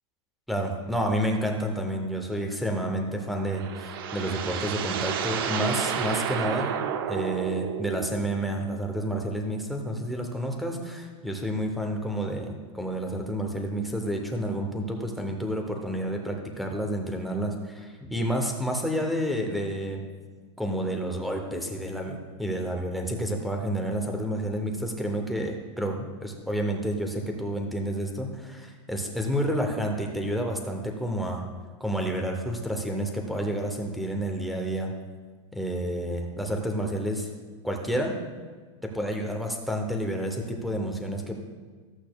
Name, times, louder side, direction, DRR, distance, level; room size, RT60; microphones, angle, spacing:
voice 1, 0.5-6.8 7.1-20.0 20.6-31.4 31.8-34.9 35.5-37.3 37.6-38.2 38.8-41.4, equal, ahead, 1 dB, 0.6 m, -30 dB
sound 1, 3.2-8.4, right 8 dB, 45° right, 0.6 m, -31 dB
14.0 x 8.2 x 2.2 m, 1.4 s
supercardioid pair, 175°, 16 cm